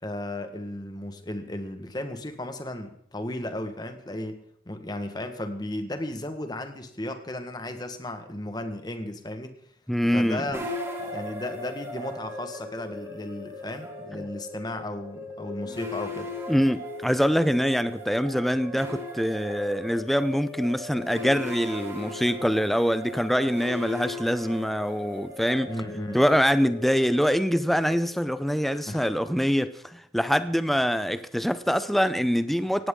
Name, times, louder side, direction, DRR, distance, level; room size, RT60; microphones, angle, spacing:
voice 1, 0.0-9.5 10.1-10.7 11.1-16.3 25.6-26.2 28.7-29.1, left 1 dB, 25° left, 1.5 m, -35 dB
voice 2, 9.9-10.4 16.5-25.7 26.1-32.9, equal, ahead, 0.6 m, -24 dB
sound 1, 10.5-29.6, left 1 dB, 15° right, 2.8 m, -38 dB
18.5 x 16.5 x 3.8 m
head